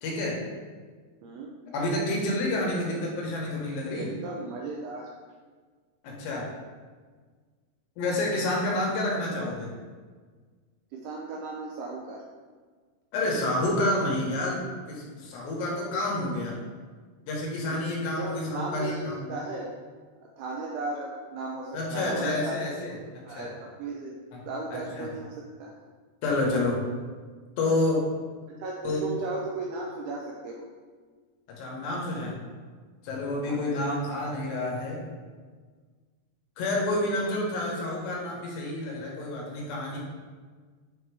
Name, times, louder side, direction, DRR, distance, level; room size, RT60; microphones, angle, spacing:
voice 1, 0.0-0.4 1.7-4.1 6.0-6.4 8.0-9.7 13.1-14.6 14.9-16.6 17.3-19.4 21.7-22.9 23.3-23.5 24.3-24.4 24.7-25.1 26.2-26.8 27.6-28.0 28.8-29.1 31.5-32.4 33.0-35.0 36.6-40.0, left 1 dB, 75° left, -3 dB, 3.1 m, -29 dB
voice 2, 4.0-5.1 10.9-12.2 17.7-19.7 20.4-22.5 23.2-24.1 24.5-25.8 28.6-30.7 33.4-34.0, right 3 dB, 85° right, -2 dB, 2.3 m, -36 dB
7.3 x 2.9 x 4.6 m, 1.5 s
omnidirectional pair, 5.1 m